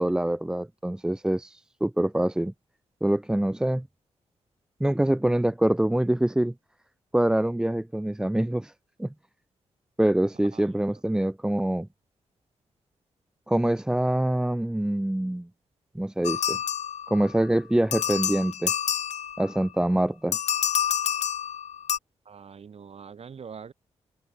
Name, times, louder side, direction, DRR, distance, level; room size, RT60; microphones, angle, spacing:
voice 1, 0.0-2.5 3.0-3.9 4.8-6.5 7.1-8.7 9.0-9.1 10.0-11.9 13.5-15.5 15.9-16.6 17.1-18.7 19.4-20.4, right 1 dB, 5° right, 0.3 m, -25 dB
voice 2, 10.5-11.0 22.2-23.7, right 6 dB, 60° right, 1.7 m, -44 dB
sound 1, 16.2-17.4 17.9-19.6 20.3-22.0, left 9 dB, 75° left, 1.5 m, -28 dB
cardioid pair, 55°, 12 cm